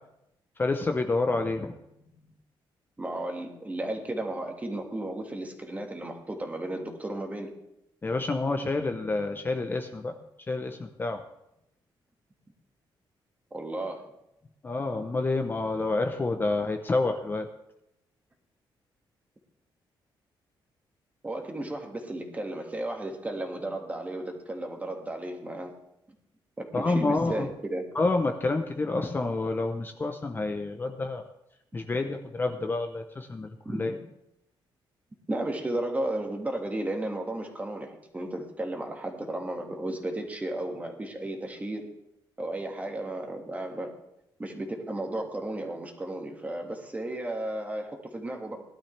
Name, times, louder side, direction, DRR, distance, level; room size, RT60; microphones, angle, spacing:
voice 1, 0.6-1.8 8.0-10.1 10.5-11.2 14.6-17.5 26.7-27.5 27.9-31.2 31.7-33.9, left 3 dB, 25° left, 5 dB, 0.8 m, -28 dB
voice 2, 3.0-7.6 13.5-14.1 21.2-25.7 26.6-27.9 33.7-33.9 35.3-41.9 42.4-43.9 44.4-48.6, right 1 dB, 15° right, 3 dB, 1.9 m, -34 dB
18.0 x 12.0 x 3.3 m, 0.84 s
cardioid pair, 130°, 9 cm